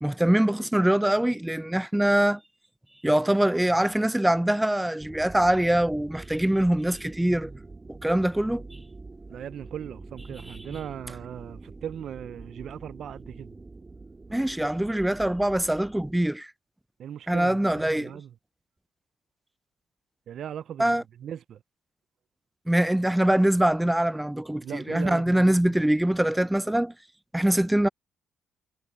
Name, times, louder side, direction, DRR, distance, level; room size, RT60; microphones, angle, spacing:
voice 1, 0.0-2.4 3.0-7.5 7.9-8.8 10.5-10.8 14.3-16.5 17.3-18.2 20.8-21.0 22.7-26.9 27.3-27.9, right 1 dB, 5° right, 0.4 m, -23 dB
sound 1, 5.0-16.1, right 3 dB, 25° right, 2.6 m, -45 dB
voice 2, 9.3-13.5 17.0-18.3 20.3-21.6 24.6-25.7, right 9 dB, 65° right, 0.5 m, -38 dB
cardioid pair, 95°, 0 cm